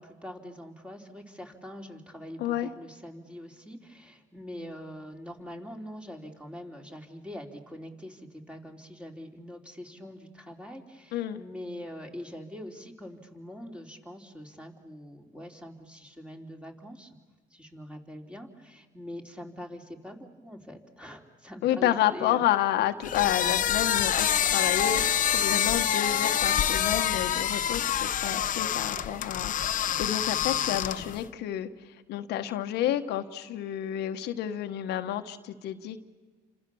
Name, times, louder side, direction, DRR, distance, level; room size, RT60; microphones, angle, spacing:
voice 1, 0.0-17.1 17.5-22.4, equal, 5° right, 3 dB, 3.5 m, -43 dB
voice 2, 2.4-2.7 11.1-11.4 21.6-31.7 32.1-36.0, left 12 dB, 80° left, 7 dB, 1.4 m, -30 dB
sound 1, 23.0-31.2, left 10 dB, 50° left, 1.0 m, -26 dB
sound 2, 23.4-29.9, right 3 dB, 90° right, 4.2 m, -48 dB
29.5 x 26.0 x 7.1 m, 1.4 s
cardioid pair, 110°, 17 cm